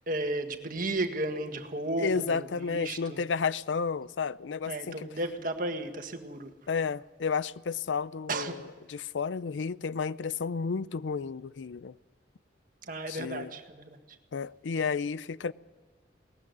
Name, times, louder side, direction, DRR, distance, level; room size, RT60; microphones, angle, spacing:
voice 1, 0.1-3.2 4.7-6.5 8.3-8.6 12.8-14.0, right 2 dB, 50° right, 1.7 m, -34 dB
voice 2, 2.0-5.1 6.7-11.9 13.1-13.5 14.3-15.5, left 5 dB, 90° left, 0.5 m, -32 dB
19.0 x 15.0 x 9.6 m
head